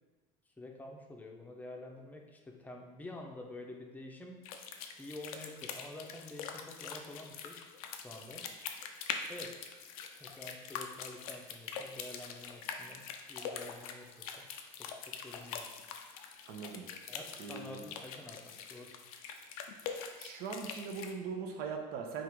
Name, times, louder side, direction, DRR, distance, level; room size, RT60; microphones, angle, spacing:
voice 1, 0.6-4.4 5.0-7.6 8.0-8.5 9.3-9.6 10.2-14.5 14.8-15.7 17.1-19.0, left 2 dB, 10° left, 1 dB, 0.6 m, -48 dB
sound 1, 4.4-21.1, left 6 dB, 90° left, 0.4 m, -44 dB
voice 2, 16.5-16.8 17.4-17.8 20.2-22.2, right 5 dB, 60° right, 3 dB, 0.7 m, -40 dB
3.6 x 2.5 x 4.5 m, 1.2 s
supercardioid pair, 95°, 18 cm